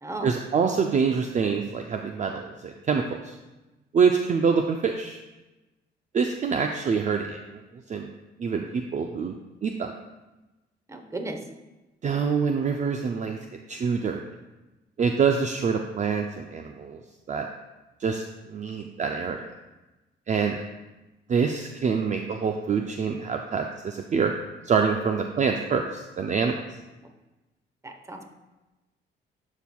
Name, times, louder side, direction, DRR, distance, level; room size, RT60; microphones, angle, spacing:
voice 1, 0.2-3.3 3.9-5.2 6.1-7.6 7.9-8.1 8.4-9.4 9.6-9.9 12.0-13.4 13.7-14.2 15.0-17.0 17.3-17.5 18.0-19.5 20.3-20.6 21.3-24.3 24.6-26.6, right 5 dB, 40° right, 4 dB, 0.5 m, -25 dB
voice 2, 10.9-11.4 27.8-28.3, right 2 dB, 15° right, 5 dB, 0.9 m, -35 dB
12.5 x 4.5 x 2.3 m, 1.1 s
cardioid pair, 90°, 20 cm